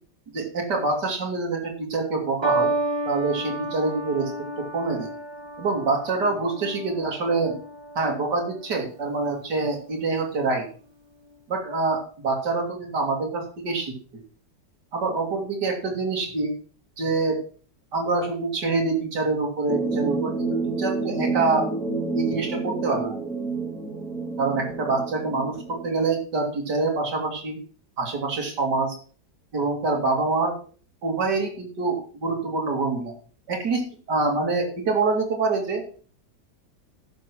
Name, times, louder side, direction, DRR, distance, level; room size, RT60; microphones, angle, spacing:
voice 1, 0.3-2.7 3.1-4.3 4.6-5.1 5.6-7.5 7.9-10.6 11.5-13.9 14.9-16.5 17.0-17.4 17.9-21.7 22.1-23.2 24.4-27.6 28.0-28.9 29.5-30.6 31.0-33.1 33.5-35.8, right 3 dB, 70° right, 0 dB, 3.2 m, -25 dB
sound 1, 2.4-8.9 9.8-10.2, right 2 dB, 15° right, 1.2 m, -31 dB
sound 2, 19.7-25.9, right 3 dB, ahead, 2.8 m, -29 dB
11.0 x 6.3 x 6.2 m, 0.42 s
omnidirectional pair, 1.9 m